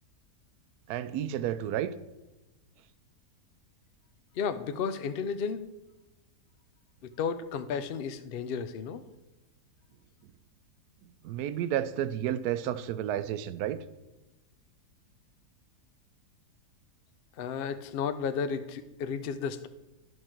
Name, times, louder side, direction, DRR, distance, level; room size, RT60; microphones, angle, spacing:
voice 1, 0.9-1.9 11.2-13.8, right 11 dB, 75° right, 14 dB, 1.1 m, -31 dB
voice 2, 4.4-5.6 7.0-9.0 17.4-19.7, left 6 dB, 80° left, 11 dB, 0.5 m, -33 dB
10.5 x 6.4 x 4.4 m, 1.0 s
omnidirectional pair, 1.7 m